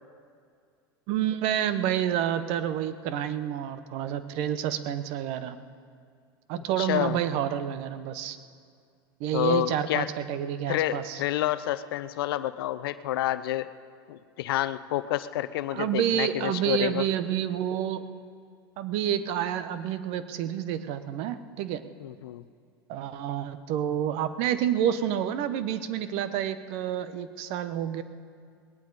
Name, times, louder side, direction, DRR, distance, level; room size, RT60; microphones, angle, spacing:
voice 1, 1.1-5.6 6.5-8.4 9.2-11.2 15.7-18.0 18.8-21.8 22.9-28.0, right 10 dB, 60° right, 12 dB, 0.9 m, -29 dB
voice 2, 6.6-7.2 9.3-10.1 10.7-13.7 14.1-17.0 22.0-22.4, left 14 dB, 75° left, 14 dB, 0.6 m, -29 dB
19.5 x 18.0 x 4.1 m, 2.2 s
hypercardioid pair, 95°, 12 cm